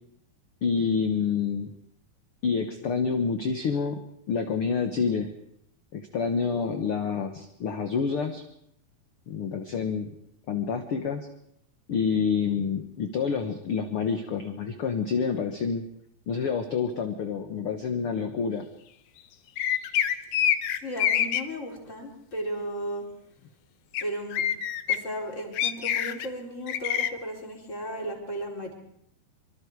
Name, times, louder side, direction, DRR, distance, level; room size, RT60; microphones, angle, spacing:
voice 1, 0.6-1.7 2.4-4.0 4.3-5.3 5.9-8.4 9.3-10.1 10.5-11.3 11.9-15.9 16.3-18.6, left 6 dB, 55° left, 6 dB, 1.6 m, -28 dB
sound 1, 19.6-21.4 23.9-24.0 24.3-25.0 25.6-26.3 26.7-27.1, left 10 dB, 80° left, 1.4 m, -25 dB
voice 2, 20.8-23.1 24.0-24.5 24.9-28.7, equal, 20° left, 1 dB, 4.2 m, -35 dB
25.5 x 24.5 x 4.8 m, 0.72 s
omnidirectional pair, 4.3 m